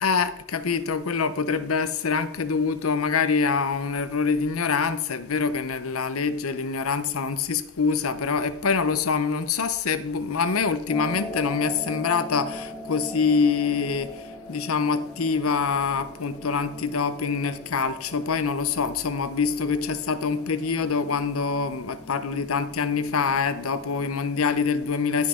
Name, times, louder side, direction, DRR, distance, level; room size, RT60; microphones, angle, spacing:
voice 1, 0.0-25.3, left 5 dB, 85° left, 0.8 m, -25 dB
sound 1, 10.9-24.6, left 1 dB, 20° left, 1.7 m, -41 dB
15.0 x 5.8 x 3.7 m
head